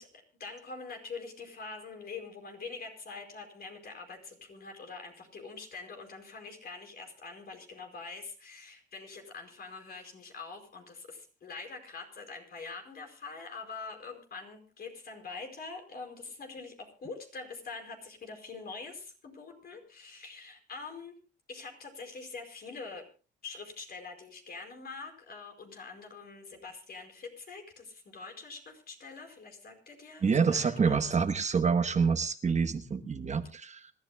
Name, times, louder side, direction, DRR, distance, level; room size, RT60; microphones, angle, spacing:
voice 1, 0.0-21.2 21.5-23.0 23.4-31.0, left 4 dB, 50° left, 3 dB, 5.0 m, -44 dB
voice 2, 30.2-33.9, right 5 dB, 35° right, 8 dB, 1.1 m, -27 dB
26.0 x 13.0 x 2.3 m, 0.36 s
cardioid pair, 90°, 20 cm